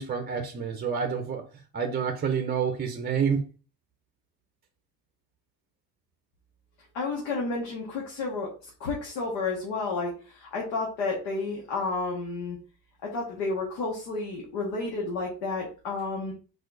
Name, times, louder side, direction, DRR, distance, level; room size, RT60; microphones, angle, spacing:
voice 1, 0.0-1.4 1.7-3.5, right 6 dB, 20° right, 0.6 m, -28 dB
voice 2, 6.9-8.5 8.8-12.6 13.0-16.3, left 3 dB, 85° left, 1.6 m, -31 dB
4.4 x 4.4 x 2.5 m
cardioid pair, 105°, 45 cm